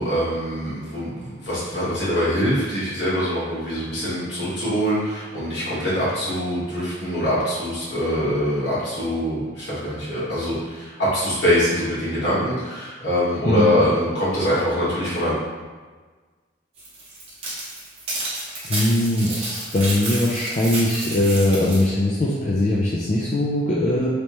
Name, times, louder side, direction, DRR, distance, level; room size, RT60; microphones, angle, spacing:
voice 1, 0.0-15.3, equal, 65° left, -9 dB, 1.5 m, -23 dB
voice 2, 13.5-13.8 18.7-24.1, left 1 dB, 40° left, -6 dB, 0.4 m, -21 dB
sound 1, 16.8-21.9, right 2 dB, 30° right, 0.8 m, -31 dB
3.3 x 2.8 x 3.0 m, 1.4 s
head